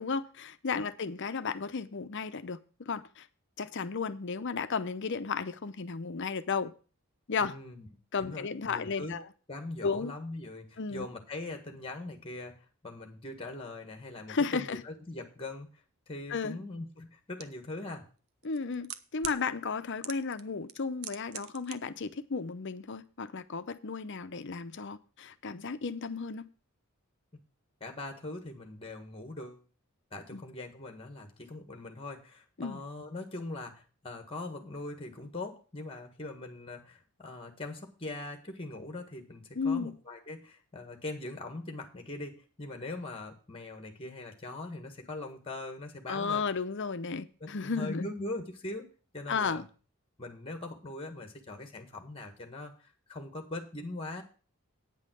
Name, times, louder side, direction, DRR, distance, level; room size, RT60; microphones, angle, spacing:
voice 1, 0.0-2.6 2.9-3.3 3.6-6.7 7.3-7.6 8.1-9.2 9.8-10.1 10.8-11.1 14.3-14.8 16.3-16.6 18.4-26.5 30.3-30.4 32.6-32.8 39.5-39.9 46.1-48.1 49.3-49.7, left 5 dB, 55° left, 0.7 m, -34 dB
voice 2, 7.4-7.9 8.2-9.2 9.5-12.5 12.8-15.7 16.1-18.0 27.8-29.6 30.1-46.4 47.4-48.9 49.1-49.6 50.2-54.2, left 2 dB, 25° left, 1.7 m, -41 dB
sound 1, 17.4-17.5 18.4-19.4 20.0-20.4 20.7-21.7 22.0-22.1, right 10 dB, 75° right, 0.8 m, -40 dB
9.2 x 5.6 x 7.7 m
head